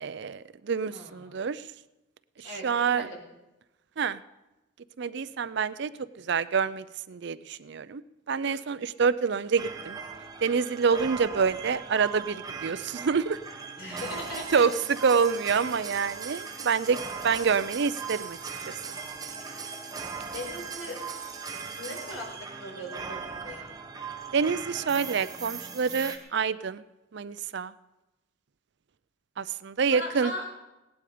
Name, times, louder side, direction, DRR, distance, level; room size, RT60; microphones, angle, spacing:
voice 1, 0.0-1.6 2.4-3.1 4.0-4.2 5.0-8.0 8.3-10.0 10.4-13.4 13.9-14.0 14.5-14.7 15.0-18.4 18.6-19.0 24.3-26.8 27.1-27.7 29.4-30.3, right 5 dB, 60° right, 16 dB, 0.5 m, -27 dB
voice 2, 0.9-1.4 2.4-2.7 2.9-3.2 13.8-14.6 20.3-21.0 21.8-23.7 29.9-30.5, left 1 dB, 85° left, 0 dB, 4.5 m, -39 dB
sound 1, 9.6-26.2, right 5 dB, 20° right, 1.0 m, -39 dB
17.5 x 11.5 x 5.0 m, 1.0 s
head